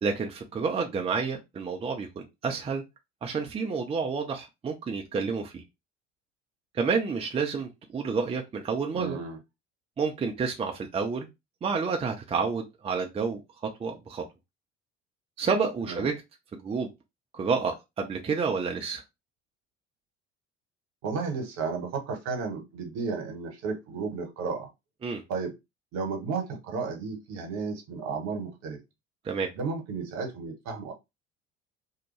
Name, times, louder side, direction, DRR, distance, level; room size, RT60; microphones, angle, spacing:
voice 1, 0.0-2.8 3.2-5.6 6.7-9.2 10.0-11.3 11.6-13.4 13.8-14.2 15.4-16.1 16.5-16.9 17.3-19.0 25.0-25.2 29.2-29.5, right 5 dB, 15° right, 2 dB, 0.5 m, -29 dB
voice 2, 8.9-9.4 15.8-16.1 21.0-24.7 25.3-25.5 25.9-28.8 29.5-30.9, right 4 dB, 50° right, 3 dB, 1.0 m, -33 dB
2.7 x 2.2 x 3.1 m, 0.22 s
figure-of-eight pair, 60°, 36 cm